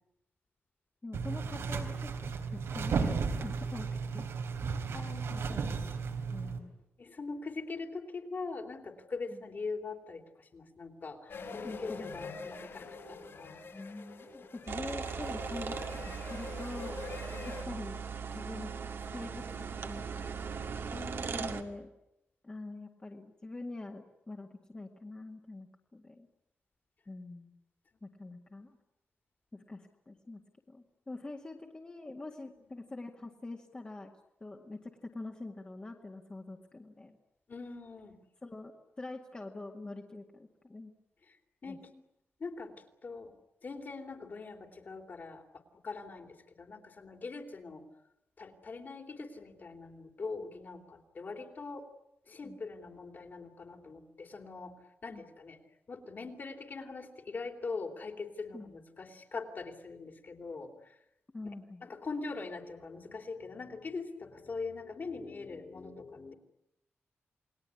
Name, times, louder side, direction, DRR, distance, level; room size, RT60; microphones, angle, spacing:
voice 1, 1.0-4.3 4.6-4.8 5.3-5.8 6.3-6.7 9.3-9.4 11.6-12.2 13.7-15.8 16.0-16.9 17.6-18.0 18.3-18.7 19.1-19.5 19.8-20.3 21.3-21.9 22.4-26.3 27.1-27.5 28.0-28.8 29.5-30.4 30.7-34.1 34.4-37.2 38.4-40.9 41.7-42.0 52.4-52.6 55.1-55.2 58.5-58.7 61.3-61.8, left 2 dB, 25° left, 1 dB, 2.1 m, -45 dB
sound 1, 1.1-6.6, right 5 dB, 85° right, 3.8 m, -34 dB
voice 2, 4.9-5.7 7.0-13.7 17.3-17.7 20.9-21.7 37.5-38.2 41.3-41.4 41.6-41.9 42.4-43.3 43.6-47.8 48.4-51.9 52.3-55.6 55.9-60.9 61.8-66.3, left 4 dB, 45° left, 4 dB, 3.5 m, -42 dB
sound 2, 11.3-17.6, left 4 dB, 65° left, 5.6 m, -45 dB
sound 3, 14.7-21.6, right 6 dB, 65° right, 2.3 m, -39 dB
29.0 x 20.5 x 9.9 m, 0.88 s
wide cardioid pair, 135°, 4 cm